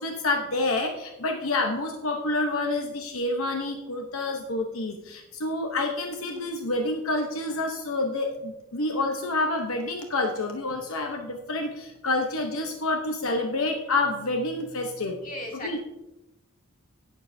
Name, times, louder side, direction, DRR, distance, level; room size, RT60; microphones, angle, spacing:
voice 1, 0.0-15.2 15.6-15.8, left 2 dB, 75° left, 3 dB, 0.9 m, -28 dB
voice 2, 15.2-15.8, left 1 dB, 40° left, -1 dB, 2.2 m, -36 dB
18.0 x 7.3 x 2.7 m, 0.93 s
head